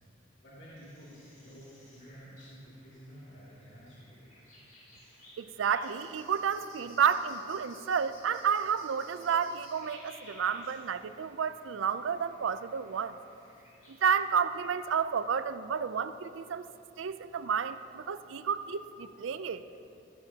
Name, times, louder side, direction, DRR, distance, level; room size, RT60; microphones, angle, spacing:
voice 1, 0.4-4.3, equal, 70° left, -9 dB, 2.4 m, -51 dB
sound 1, 0.7-14.2, left 1 dB, 40° left, 2.8 m, -57 dB
voice 2, 5.4-13.2 13.9-16.7 17.0-19.6, right 7 dB, 90° right, 13 dB, 0.4 m, -31 dB
16.5 x 9.9 x 2.8 m, 2.7 s
head